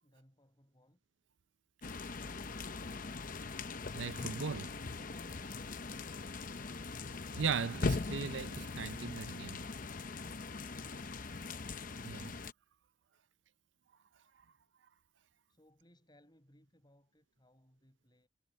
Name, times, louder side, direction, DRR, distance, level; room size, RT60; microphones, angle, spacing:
voice 1, 0.0-1.0 4.7-5.8 15.5-18.3, left 1 dB, 25° left, 6.2 m, -65 dB
sound 1, 1.8-12.5, left 3 dB, 45° left, 0.8 m, -41 dB
voice 2, 3.9-4.7 7.3-9.6 12.0-12.3, right 6 dB, 85° right, 0.6 m, -38 dB
head